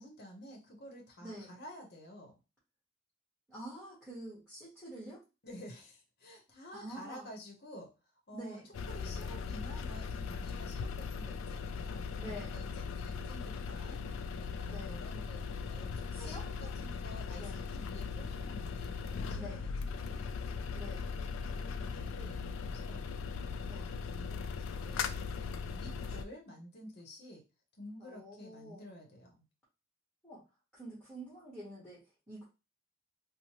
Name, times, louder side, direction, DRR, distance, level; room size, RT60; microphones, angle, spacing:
voice 1, 0.0-2.3 5.4-7.9 8.3-8.6 8.9-19.5 19.8-20.1 21.5-23.0 23.4-27.4 27.8-29.5, equal, 50° left, 1 dB, 0.7 m, -51 dB
voice 2, 1.2-1.5 3.5-5.2 6.7-7.3 8.3-8.7 12.2-12.6 14.7-15.0 16.1-16.4 17.4-17.6 19.3-19.7 20.7-21.0 23.7-23.9 25.8-26.1 28.0-28.9 30.2-30.4 30.7-32.4, equal, ahead, -8 dB, 1.0 m, -47 dB
sound 1, 8.7-26.2, left 5 dB, 80° left, 0.3 m, -39 dB
3.0 x 2.0 x 2.8 m, 0.29 s
head